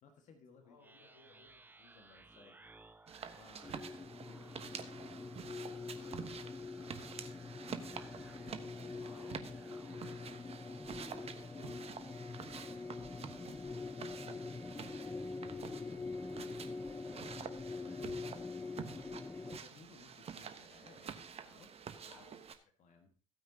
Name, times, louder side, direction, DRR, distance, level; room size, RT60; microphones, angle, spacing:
voice 1, 0.0-0.8 1.8-3.0 3.4-3.9 4.2-7.2 7.9-10.7 17.1-18.2 18.5-18.9 19.4-22.2 22.8-23.1, left 4 dB, 50° left, 5 dB, 1.7 m, -62 dB
voice 2, 0.6-1.6 7.7-8.1 11.0-12.3 12.7-14.0 14.3-16.2 18.7-19.2 22.1-22.4, left 3 dB, 85° left, 1 dB, 2.2 m, -65 dB
sound 1, 0.8-10.3, right 2 dB, 10° right, 0.8 m, -61 dB
sound 2, 3.1-22.6, right 7 dB, 35° right, 1.2 m, -49 dB
sound 3, 3.6-19.6, left 4 dB, 15° left, 0.4 m, -45 dB
15.5 x 9.2 x 2.8 m, 0.39 s
figure-of-eight pair, 55°, 17 cm